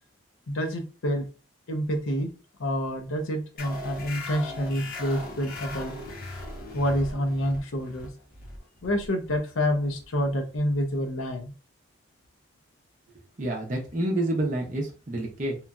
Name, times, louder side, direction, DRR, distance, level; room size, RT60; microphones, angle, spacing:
voice 1, 0.5-1.3 1.7-2.3 2.6-6.0 6.7-8.1 8.8-11.5, equal, 85° left, 5 dB, 0.6 m, -28 dB
sound 1, 3.6-10.7, left 2 dB, 45° left, 0.7 m, -40 dB
voice 2, 13.4-15.6, right 1 dB, 40° right, -1 dB, 0.6 m, -28 dB
3.0 x 2.5 x 2.2 m, 0.34 s
head